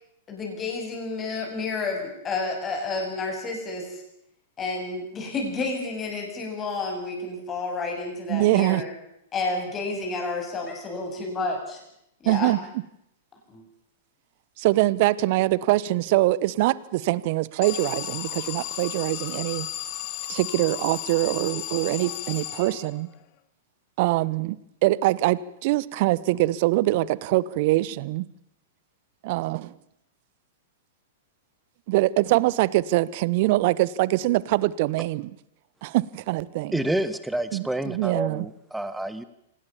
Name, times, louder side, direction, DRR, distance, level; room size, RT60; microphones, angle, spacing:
voice 1, 0.3-4.0 4.6-8.9 9.3-11.8 12.2-12.5 13.5-13.6, left 3 dB, 25° left, 7.7 m, -30 dB
voice 2, 8.3-8.8 12.3-12.6 14.6-19.7 20.3-23.1 24.0-28.3 29.2-29.7 31.9-35.3 35.8-36.8 37.5-38.4, right 17 dB, 50° right, 1.0 m, -23 dB
Alarm, 17.6-23.2, left 13 dB, 45° left, 1.8 m, -34 dB
voice 3, 36.7-39.2, right 1 dB, 5° right, 1.6 m, -28 dB
26.5 x 19.0 x 7.3 m
figure-of-eight pair, 105°, 0 cm